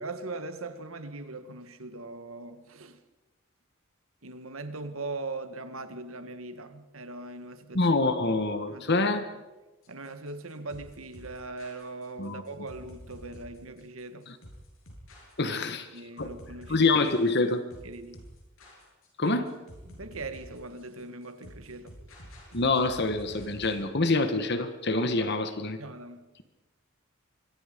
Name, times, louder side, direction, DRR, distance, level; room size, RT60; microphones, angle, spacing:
voice 1, 0.0-3.0 4.2-8.2 8.7-9.0 9.9-14.3 15.5-15.6 15.9-16.8 17.8-18.2 19.2-19.4 19.9-22.0 25.2-25.3 25.8-26.2, right 3 dB, 90° right, 1.8 m, -40 dB
voice 2, 7.7-9.2 12.2-12.4 14.3-14.4 15.4-15.9 16.2-16.3 16.7-17.6 19.2-19.5 22.5-25.8, left 3 dB, 55° left, 1.5 m, -26 dB
sound 1, 9.8-23.8, equal, 75° left, 7.9 m, -49 dB
25.0 x 23.5 x 5.3 m
head